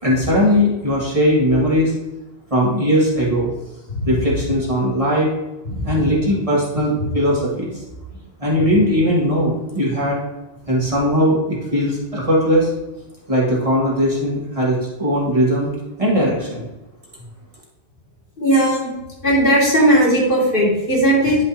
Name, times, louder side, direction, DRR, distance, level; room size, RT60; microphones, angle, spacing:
voice 1, 0.0-1.9 2.5-3.5 4.1-5.3 5.8-7.7 8.4-10.2 10.7-12.7 13.3-15.7 16.0-16.7, equal, 30° right, -5 dB, 2.0 m, -19 dB
voice 2, 18.4-18.9 19.2-21.4, right 1 dB, 50° left, -5 dB, 2.7 m, -16 dB
11.0 x 5.2 x 2.8 m, 1.0 s
omnidirectional pair, 1.1 m